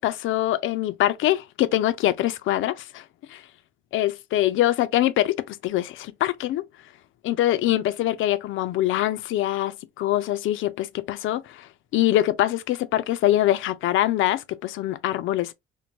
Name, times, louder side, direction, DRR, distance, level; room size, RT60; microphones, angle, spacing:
voice 1, 0.0-3.0 3.3-3.4 3.9-6.7 7.2-15.5, left 14 dB, 80° left, 0.5 m, -24 dB
4.5 x 2.1 x 2.6 m
cardioid pair, 90°, 20 cm